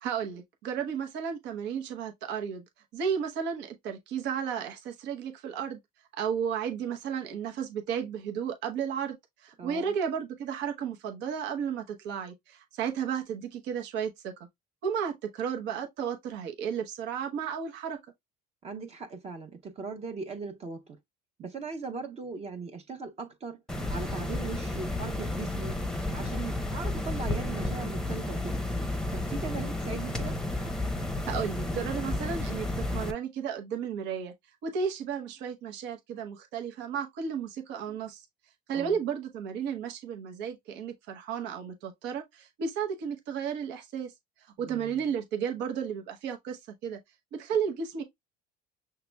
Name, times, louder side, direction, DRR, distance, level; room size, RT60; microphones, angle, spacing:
voice 1, 0.0-2.6 2.9-5.8 6.1-14.5 14.8-18.0 31.2-34.3 34.6-38.3 38.7-44.1 44.4-47.0 47.3-48.0, right 7 dB, 75° right, 1.0 m, -33 dB
voice 2, 9.6-9.9 18.6-21.0 21.4-23.6 23.9-25.8 26.1-28.6 29.1-30.4 38.7-39.0 44.6-44.9, right 4 dB, 35° right, 0.8 m, -39 dB
sound 1, 23.7-33.1, left 2 dB, 5° left, 0.7 m, -32 dB
5.8 x 3.0 x 2.2 m
supercardioid pair, 100°, 18 cm